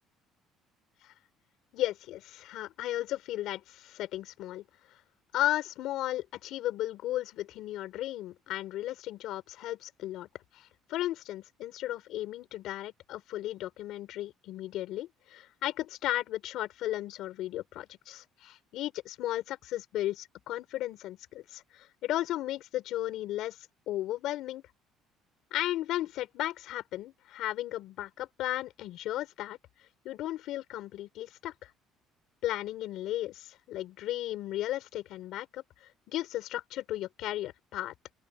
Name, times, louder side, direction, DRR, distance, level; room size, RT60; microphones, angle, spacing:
voice 1, 1.7-4.6 5.3-10.3 10.5-23.6 23.9-24.6 25.5-29.6 30.0-31.7 32.4-35.6 36.1-37.9, left 14 dB, 65° left, 4.9 m, -35 dB
open air
cardioid pair, 155°, 0 cm